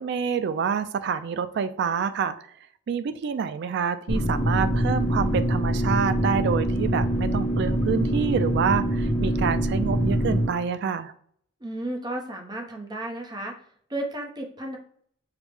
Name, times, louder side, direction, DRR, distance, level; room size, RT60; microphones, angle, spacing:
voice 1, 0.0-2.3 2.9-11.1, right 6 dB, 60° right, 13 dB, 0.3 m, -27 dB
sound 1, 4.1-10.5, right 1 dB, 30° left, 1.1 m, -24 dB
voice 2, 11.6-13.5 13.9-14.8, right 1 dB, 20° right, 2 dB, 0.6 m, -33 dB
4.8 x 2.1 x 3.3 m, 0.62 s
head